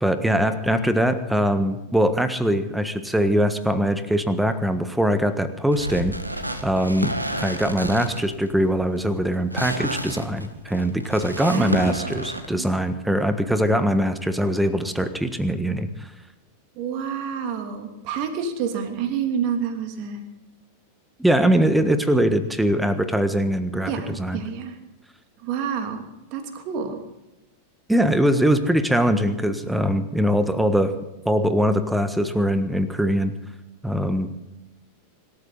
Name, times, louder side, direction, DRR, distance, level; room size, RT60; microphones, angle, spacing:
voice 1, 0.0-6.1 6.6-16.1 21.2-24.4 27.9-30.9 31.2-33.3 33.8-34.3, equal, 5° right, 10 dB, 1.5 m, -22 dB
sound 1, 5.7-12.5, right 1 dB, 85° right, 1.6 m, -31 dB
voice 2, 11.4-12.1 12.5-12.7 16.7-20.2 23.9-24.8 25.4-26.0 26.3-27.0, right 7 dB, 40° right, 5 dB, 2.9 m, -28 dB
25.5 x 13.5 x 4.1 m, 0.98 s
figure-of-eight pair, 90°, 0 cm